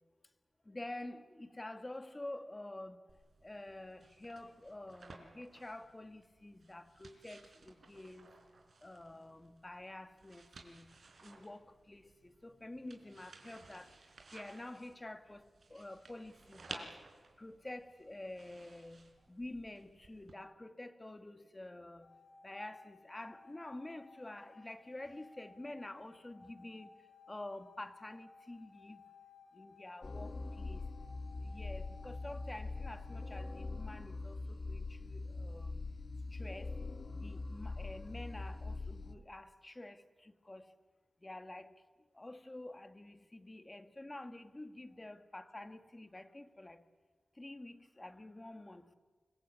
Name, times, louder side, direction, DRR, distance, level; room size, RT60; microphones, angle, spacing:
voice 1, 0.6-3.0 3.4-8.3 8.8-17.1 17.4-29.0 29.5-30.8 31.4-35.9 36.3-40.7 41.2-41.8 42.1-46.9 47.3-48.9, left 1 dB, 25° left, 1.8 m, -49 dB
sound 1, 3.1-20.3, right 3 dB, 70° right, 4.6 m, -57 dB
sound 2, 22.0-33.7, left 4 dB, 75° left, 2.9 m, -60 dB
sound 3, 30.0-39.2, left 3 dB, 50° left, 1.5 m, -43 dB
25.5 x 22.5 x 8.6 m
wide cardioid pair, 95°, 0 cm